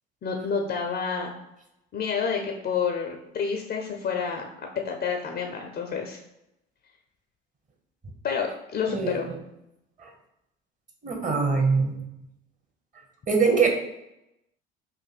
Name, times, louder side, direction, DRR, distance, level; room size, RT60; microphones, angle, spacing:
voice 1, 0.2-1.3 1.9-4.5 4.8-6.2 8.2-9.3, left 6 dB, 30° left, 2 dB, 0.5 m, -29 dB
voice 2, 8.9-9.4 10.0-10.1 11.0-12.0 13.3-13.7, right 5 dB, 25° right, 2 dB, 0.9 m, -23 dB
2.6 x 2.5 x 4.0 m, 0.87 s
figure-of-eight pair, 60°, 32 cm